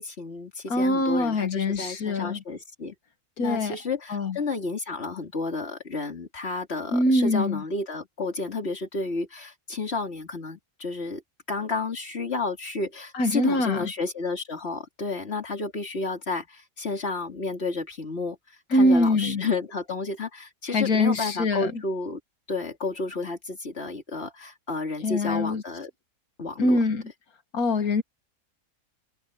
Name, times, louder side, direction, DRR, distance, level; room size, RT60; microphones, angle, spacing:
voice 1, 0.0-2.9 3.4-11.2 11.5-18.4 18.7-22.2 22.5-25.9 26.4-26.8, left 3 dB, 45° left, 3.4 m, -31 dB
voice 2, 0.7-2.4 3.4-3.8 4.1-4.4 6.9-7.6 13.1-13.9 18.7-19.4 20.7-21.7 25.0-25.6 26.6-27.0 27.5-28.0, left 1 dB, 85° left, 2.0 m, -23 dB
omnidirectional pair, 1.5 m